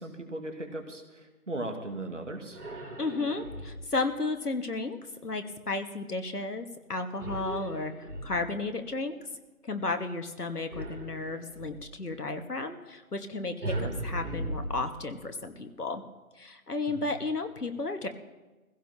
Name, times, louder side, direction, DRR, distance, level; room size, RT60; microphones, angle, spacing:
voice 1, 0.0-2.6 13.7-14.0 16.9-17.1, right 1 dB, 50° right, 4 dB, 1.8 m, -38 dB
sound 1, 2.5-4.0 7.2-8.8 10.7-11.9 13.6-15.3, right 1 dB, 75° right, 3.2 m, -38 dB
voice 2, 3.0-9.2 9.6-16.0 16.4-18.1, left 3 dB, 85° left, 6 dB, 1.8 m, -33 dB
23.0 x 16.0 x 2.9 m, 1.2 s
figure-of-eight pair, 170°, 45 cm